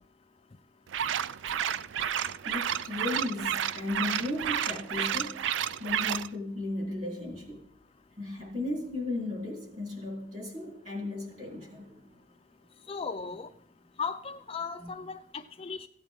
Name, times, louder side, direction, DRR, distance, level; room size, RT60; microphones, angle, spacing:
sound 1, 0.9-6.3, right 9 dB, 70° right, 0.4 m, -31 dB
voice 1, 2.4-5.4 5.8-7.6 8.2-12.1 14.8-14.9, left 2 dB, 40° right, -2 dB, 3.8 m, -35 dB
voice 2, 12.9-13.5 14.0-15.9, left 5 dB, 30° left, 8 dB, 0.4 m, -36 dB
15.5 x 8.7 x 3.7 m, 0.68 s
head